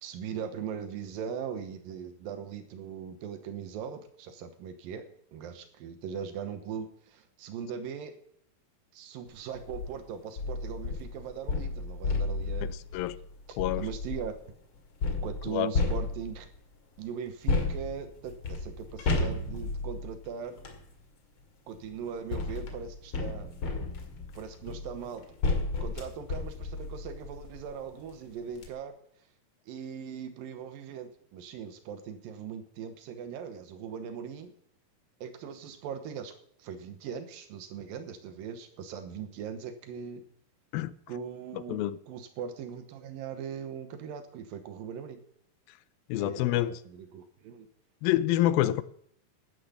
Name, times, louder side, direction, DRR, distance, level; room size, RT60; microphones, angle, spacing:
voice 1, 0.0-8.1 8.9-13.1 13.5-14.4 15.2-16.5 17.0-20.6 21.7-23.5 24.3-25.3 25.8-29.0 29.7-34.5 35.2-36.3 36.6-40.2 41.1-41.8 42.1-45.2 46.2-47.7, right 7 dB, 80° right, 2.8 m, -40 dB
sound 1, 9.5-9.9 10.4-14.4 15.0-16.6 17.5-20.8 21.8-27.7 28.1-28.2 28.5-28.7, left 3 dB, 45° left, 2.4 m, -33 dB
voice 2, 12.6-13.2 13.6-13.9 15.5-15.7 40.7-40.9 41.7-42.0 46.1-46.8 48.0-48.8, left 14 dB, 85° left, 2.5 m, -27 dB
12.0 x 10.0 x 7.0 m
omnidirectional pair, 4.1 m